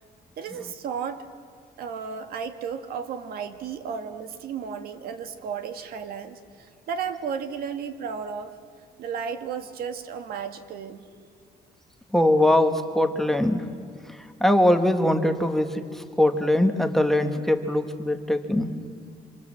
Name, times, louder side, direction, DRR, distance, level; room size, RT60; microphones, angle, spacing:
voice 1, 0.4-1.2 1.8-8.6 9.0-11.0, right 6 dB, 75° right, 9 dB, 1.7 m, -34 dB
voice 2, 12.1-13.7 14.1-18.7, left 1 dB, ahead, 6 dB, 1.2 m, -22 dB
27.0 x 26.0 x 7.3 m, 2.3 s
cardioid pair, 160°, 16 cm